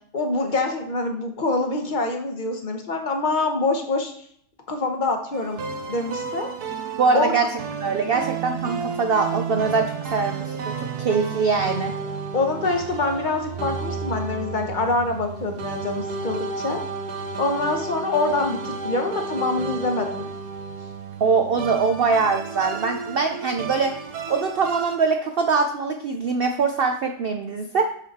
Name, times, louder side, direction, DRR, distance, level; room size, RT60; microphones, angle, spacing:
voice 1, 0.1-4.1 4.7-5.6 5.9-6.5 7.1-7.3 12.3-16.8 17.4-20.3, left 3 dB, 35° left, 4 dB, 1.0 m, -25 dB
sound 1, 5.3-25.0, right 5 dB, 80° right, 1.4 m, -32 dB
voice 2, 7.0-7.5 7.8-12.0 21.2-24.0 24.3-27.9, right 4 dB, 65° right, 5 dB, 0.5 m, -23 dB
6.4 x 6.4 x 4.2 m, 0.66 s
omnidirectional pair, 1.6 m